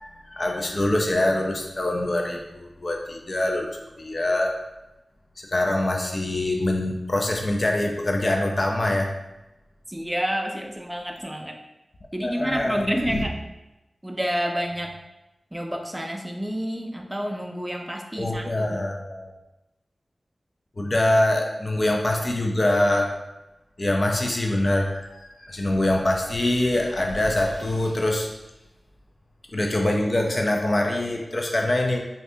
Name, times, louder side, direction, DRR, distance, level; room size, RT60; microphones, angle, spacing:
voice 1, 0.0-3.7 4.0-4.5 5.4-9.1 12.2-13.2 18.2-19.3 20.8-23.1 23.8-28.3 29.5-32.0, left 1 dB, 50° left, 1 dB, 0.4 m, -24 dB
voice 2, 9.9-11.6 12.1-13.3 14.0-14.9 15.5-18.8, equal, 10° right, 3 dB, 0.5 m, -29 dB
2.6 x 2.5 x 3.4 m, 0.98 s
cardioid pair, 45°, 0 cm